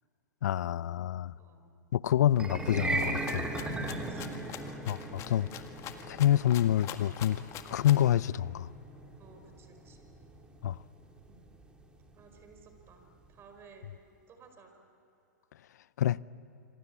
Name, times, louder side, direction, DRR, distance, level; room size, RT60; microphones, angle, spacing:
voice 1, 0.4-1.3 1.9-3.5 4.9-5.6 6.1-7.4 7.7-8.7 10.6-10.8 16.0-16.2, left 11 dB, 65° left, 0.6 m, -27 dB
voice 2, 1.3-1.7 3.8-4.4 4.7-5.1 9.2-10.1 11.3-11.4 12.1-14.0 14.3-14.7, right 5 dB, 25° right, 4.7 m, -57 dB
sound 1, 2.3-12.6, right 2 dB, 10° right, 2.6 m, -38 dB
Rattle (instrument), 2.9-8.1, left 10 dB, 30° left, 1.8 m, -45 dB
26.5 x 26.5 x 8.4 m
hypercardioid pair, 120°, 10 cm